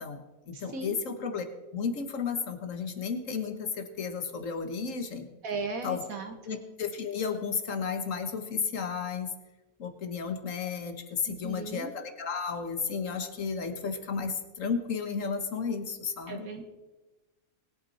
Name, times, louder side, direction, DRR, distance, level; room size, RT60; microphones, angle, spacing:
voice 1, 0.0-1.4 1.7-5.3 5.8-6.0 6.5-9.3 9.8-16.5, left 5 dB, 65° left, 7 dB, 1.6 m, -33 dB
voice 2, 5.4-6.6 11.3-11.9 16.3-16.6, right 3 dB, 75° right, 5 dB, 1.9 m, -36 dB
20.5 x 8.5 x 4.2 m, 1.1 s
omnidirectional pair, 1.5 m